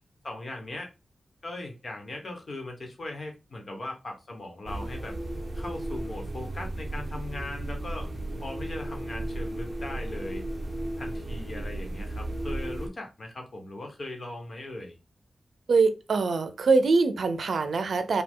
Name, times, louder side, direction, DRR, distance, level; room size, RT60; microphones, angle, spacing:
voice 1, 0.2-0.9 1.4-5.1 5.5-8.1 8.4-10.4 11.0-15.0, left 2 dB, 45° left, 1.2 m, -39 dB
sound 1, 4.7-12.9, right 1 dB, 25° right, 1.0 m, -34 dB
voice 2, 15.7-18.2, right 4 dB, 75° right, 0.5 m, -23 dB
5.2 x 2.3 x 3.7 m
wide cardioid pair, 160°, 0 cm